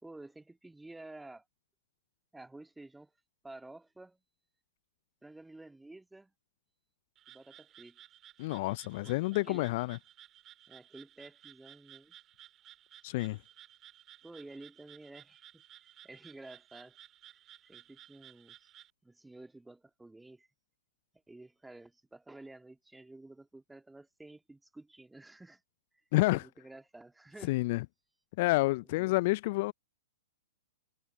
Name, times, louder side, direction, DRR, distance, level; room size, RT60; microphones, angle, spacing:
voice 1, 0.0-1.4 2.3-3.1 3.4-4.2 5.2-6.3 7.3-8.0 9.0-9.7 10.7-12.2 14.2-15.6 16.0-17.0 17.6-18.7 19.0-20.5 21.3-25.6 26.3-27.6 28.9-29.1, right 2 dB, 5° right, 2.3 m, -51 dB
Frog, 7.2-18.9, right 12 dB, 25° right, 7.3 m, -57 dB
voice 2, 8.4-10.0 13.0-13.4 26.1-26.4 27.5-27.8 28.4-29.7, left 21 dB, 45° left, 0.6 m, -29 dB
figure-of-eight pair, 110°, 0 cm